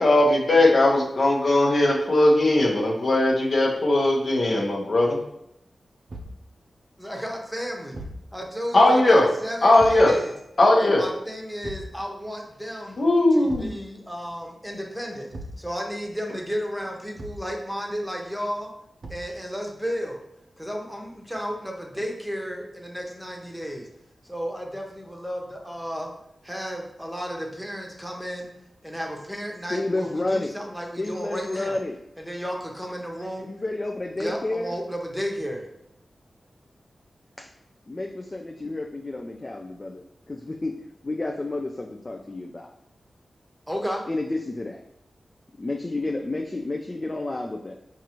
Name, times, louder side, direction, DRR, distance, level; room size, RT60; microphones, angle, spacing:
voice 1, 0.0-5.2 8.7-9.3 9.6-10.2 10.6-11.0 13.0-13.7, left 1 dB, 65° left, -2 dB, 0.9 m, -19 dB
Thump thud, 6.1-6.4 7.9-8.3 9.8-10.1 11.6-12.0 13.5-13.8 15.3-15.7 17.2-17.5 19.0-19.4, right 1 dB, 65° right, 0.5 m, -38 dB
voice 2, 7.0-8.0 8.3-10.3 10.7-13.0 13.3-15.3 15.6-18.7 19.1-20.2 20.6-23.9 24.2-26.1 26.4-28.5 28.8-31.8 32.2-33.5 34.2-35.6 43.7-44.1, equal, 5° right, 0 dB, 0.8 m, -33 dB
voice 3, 29.7-30.6 31.0-32.0 33.4-34.7 37.4-37.5 37.9-42.7 44.1-44.8 45.6-47.8, left 2 dB, 40° left, 2 dB, 0.3 m, -30 dB
4.6 x 2.5 x 2.9 m, 0.78 s
cardioid pair, 45°, 0 cm